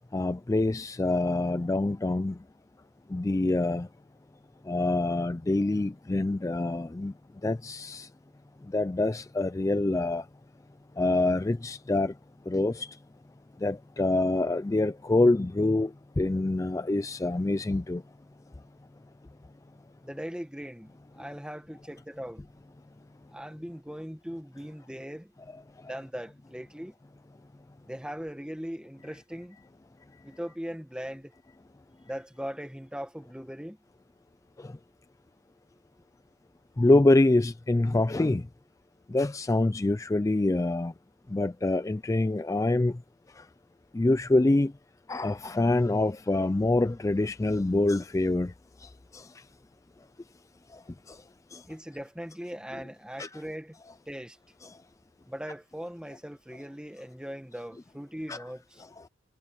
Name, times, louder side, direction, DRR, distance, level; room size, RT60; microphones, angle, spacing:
voice 1, 0.1-2.4 3.1-3.9 4.6-7.1 7.4-8.1 8.6-10.3 11.0-12.2 12.5-13.0 13.6-18.0 25.8-25.9 34.6-34.8 36.8-38.5 39.1-40.9 41.3-43.0 43.3-43.5 43.9-44.7 45.1-49.5 50.7-51.2 51.5-51.7 53.2-53.4 54.6-54.8 58.3-58.4 59.0-59.1, left 2 dB, 15° left, 0.3 m, -26 dB
voice 2, 20.0-22.4 23.3-25.3 25.8-26.9 27.8-29.6 30.2-31.3 32.0-33.8 51.7-53.7 54.1-54.4 55.3-58.8, equal, 5° right, 1.6 m, -39 dB
head